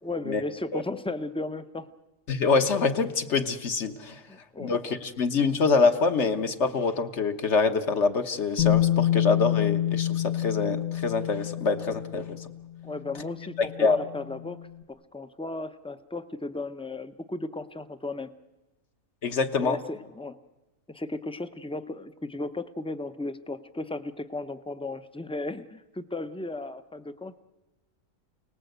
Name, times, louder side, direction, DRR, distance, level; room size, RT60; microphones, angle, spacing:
voice 1, 0.0-1.9 4.3-4.7 12.8-14.6 15.1-18.3 19.6-20.4 20.9-27.4, left 2 dB, 5° left, 11 dB, 0.4 m, -35 dB
voice 2, 2.3-4.2 4.6-12.5 13.6-14.0 19.2-19.8, left 4 dB, 60° left, 7 dB, 1.5 m, -25 dB
Bass guitar, 8.6-14.6, left 13 dB, 80° left, 2.0 m, -28 dB
29.0 x 19.0 x 8.0 m, 1.1 s
omnidirectional pair, 1.3 m